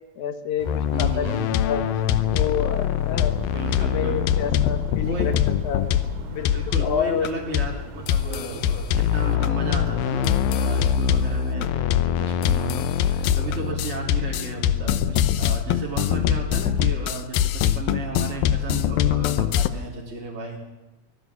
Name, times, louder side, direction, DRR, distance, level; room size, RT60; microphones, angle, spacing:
voice 1, 0.2-1.8 2.3-3.5 3.8-5.3 5.6-5.9 6.3-7.4 8.0-8.5, left 7 dB, 60° left, 10 dB, 2.5 m, -29 dB
sound 1, 0.6-10.7, right 6 dB, 80° right, 3.6 m, -40 dB
sound 2, 0.7-7.3 7.5-7.8 8.1-19.7, left 9 dB, 80° left, 2.6 m, -23 dB
voice 2, 0.9-1.5 3.5-4.2 5.0-5.3 5.8-6.0 6.4-20.6, right 3 dB, 20° right, -2 dB, 3.2 m, -34 dB
23.5 x 17.0 x 7.4 m, 1.1 s
omnidirectional pair, 4.2 m